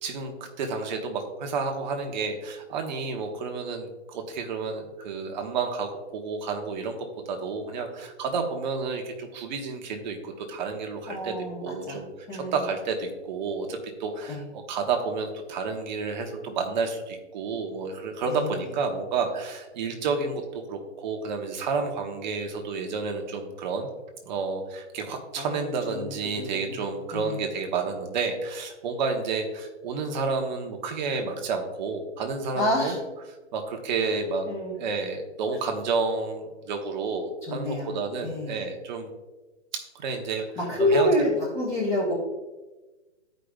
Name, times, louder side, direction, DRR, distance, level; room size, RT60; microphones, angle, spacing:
voice 1, 0.0-7.0 7.3-11.4 11.6-23.9 24.2-32.9 33.5-34.5 34.8-39.1 39.7-40.5 40.8-41.1, right 4 dB, 40° right, 4 dB, 1.1 m, -30 dB
voice 2, 11.1-12.0 12.3-12.7 14.3-14.4 18.3-18.7 25.4-26.9 27.1-27.4 32.5-33.0 34.5-34.7 37.5-38.7 40.6-41.3 41.5-42.1, left 1 dB, 10° left, -6 dB, 0.5 m, -28 dB
13.0 x 5.1 x 2.4 m, 1.1 s
hypercardioid pair, 150°, 36 cm